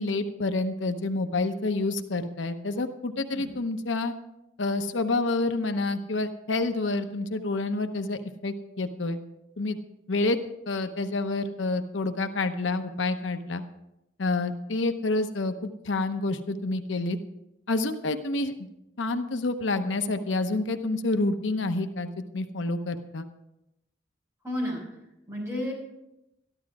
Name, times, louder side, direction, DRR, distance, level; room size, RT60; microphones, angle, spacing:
voice 1, 0.0-4.1 4.6-9.2 9.6-9.8 10.1-10.4 10.7-13.6 14.2-17.2 17.7-18.5 19.0-23.3, left 2 dB, 90° left, 7 dB, 0.9 m, -28 dB
voice 2, 24.4-24.8 25.3-25.7, left 1 dB, 15° right, -4 dB, 5.7 m, -31 dB
13.5 x 12.0 x 4.8 m, 0.89 s
head